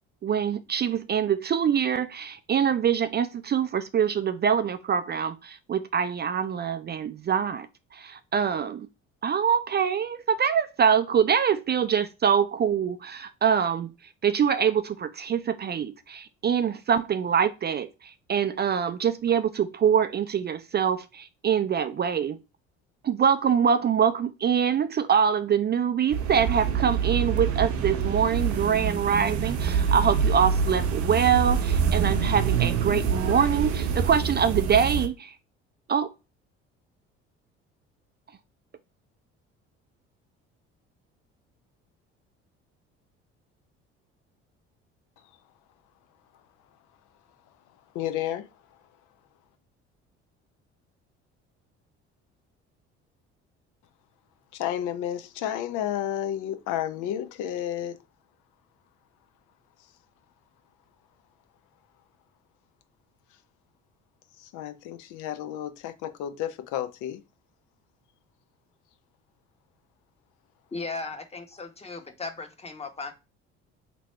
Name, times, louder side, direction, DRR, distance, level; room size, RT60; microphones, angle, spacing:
voice 1, 0.2-7.7 7.9-8.9 9.2-13.9 14.2-22.4 23.0-35.3 35.9-36.1, right 7 dB, 30° right, 0.4 m, -24 dB
sound 1, 26.1-35.1, right 6 dB, 60° right, 0.8 m, -26 dB
voice 2, 47.9-48.5 54.5-58.0 64.4-67.2, left 11 dB, 65° left, 0.7 m, -31 dB
voice 3, 70.7-73.1, left 3 dB, 20° left, 1.1 m, -36 dB
3.0 x 2.6 x 4.4 m
hypercardioid pair, 65°, 32 cm